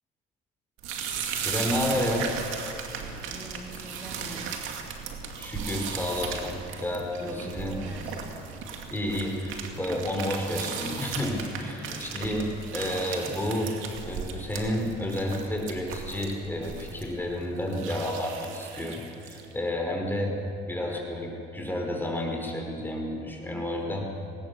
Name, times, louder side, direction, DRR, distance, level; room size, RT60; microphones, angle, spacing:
sound 1, 0.8-19.5, right 6 dB, 80° right, 2.3 m, -37 dB
voice 1, 1.4-2.3 5.4-7.7 8.9-13.7 14.0-20.4 20.7-24.0, left 1 dB, 10° left, 1 dB, 5.2 m, -31 dB
voice 2, 3.3-4.7 7.2-8.4 11.8-12.1 20.8-21.1, right 1 dB, 10° right, -3 dB, 2.9 m, -43 dB
20.0 x 19.5 x 7.1 m, 2.6 s
cardioid pair, 90°, 20 cm